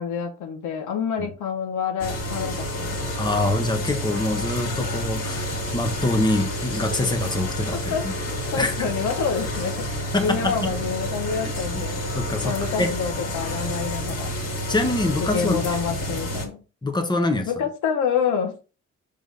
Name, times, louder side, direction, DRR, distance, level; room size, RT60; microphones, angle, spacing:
voice 1, 0.0-3.1 4.8-4.9 7.7-8.1 8.5-9.9 10.2-12.0 12.4-14.3 15.3-16.6 17.5-18.6, left 6 dB, 80° left, 1.4 m, -27 dB
sound 1, 2.0-16.5, equal, 55° left, 2.4 m, -29 dB
voice 2, 3.2-5.5 5.7-8.1 8.6-8.8 10.1-10.7 11.4-11.5 12.1-12.9 14.7-15.6 16.8-17.5, left 2 dB, 15° left, 1.2 m, -25 dB
5.1 x 3.6 x 5.3 m
cardioid pair, 90°, 30 cm